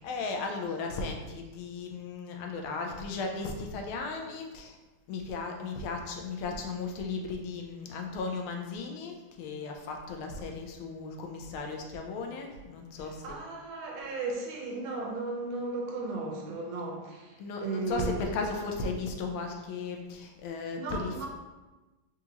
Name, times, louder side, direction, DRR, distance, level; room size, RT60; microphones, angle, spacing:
voice 1, 0.0-4.8 5.1-13.3 17.4-21.3, left 4 dB, 85° left, 2 dB, 1.5 m, -36 dB
voice 2, 13.0-17.3 17.6-18.3 20.8-21.3, right 3 dB, 80° right, 0 dB, 1.6 m, -35 dB
4.1 x 3.7 x 2.9 m, 1.2 s
omnidirectional pair, 2.3 m